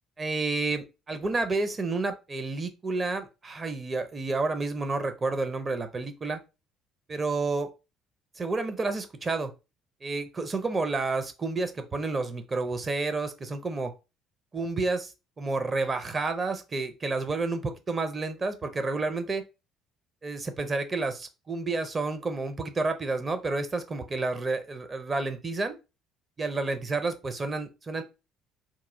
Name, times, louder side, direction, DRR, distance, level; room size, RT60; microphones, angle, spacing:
voice 1, 0.2-6.4 7.1-7.7 8.4-9.5 10.0-13.9 14.5-19.4 20.2-25.7 26.4-28.0, right 3 dB, 30° right, 8 dB, 0.6 m, -30 dB
3.0 x 2.3 x 3.4 m, 0.28 s
figure-of-eight pair, 50°, 0 cm